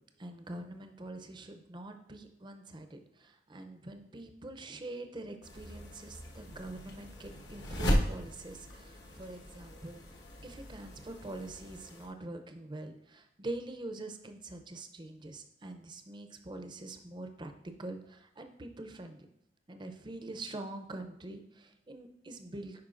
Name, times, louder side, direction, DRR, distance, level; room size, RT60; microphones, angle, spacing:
voice 1, 0.2-10.0 10.4-19.3 19.7-22.8, right 2 dB, 25° right, 6 dB, 0.5 m, -44 dB
sound 1, 5.4-12.1, equal, 70° left, 1.2 m, -37 dB
10.5 x 4.5 x 2.5 m, 0.76 s
head